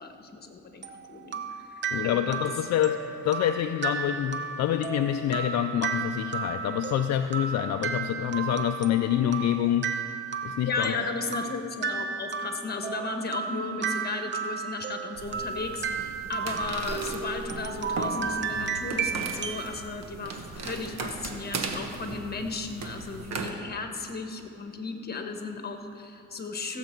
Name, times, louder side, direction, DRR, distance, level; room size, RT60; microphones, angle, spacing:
voice 1, 0.0-1.4 1.7-2.4 10.6-26.8, left 4 dB, 30° left, 5 dB, 1.4 m, -35 dB
sound 1, 0.8-19.7, right 6 dB, 40° right, 0.8 m, -34 dB
voice 2, 1.9-9.9 10.4-10.9, left 10 dB, 60° left, 7 dB, 0.5 m, -27 dB
sound 2, 15.2-23.5, right 4 dB, 60° right, 1.2 m, -37 dB
15.0 x 7.8 x 4.6 m, 2.5 s
cardioid pair, 90°, 30 cm